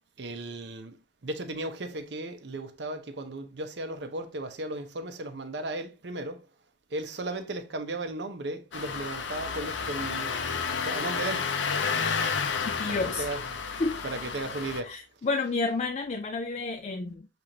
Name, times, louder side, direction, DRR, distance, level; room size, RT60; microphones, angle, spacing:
voice 1, 0.2-1.0 1.2-6.4 6.9-10.4 10.8-11.5 12.9-13.6 14.0-14.9, right 2 dB, 70° right, 0.7 m, -35 dB
Engine starting, 8.7-14.8, left 5 dB, 85° left, 0.6 m, -31 dB
voice 2, 12.8-13.3 13.8-14.0 14.8-17.3, left 3 dB, 35° left, 0.3 m, -30 dB
6.7 x 2.5 x 2.8 m
head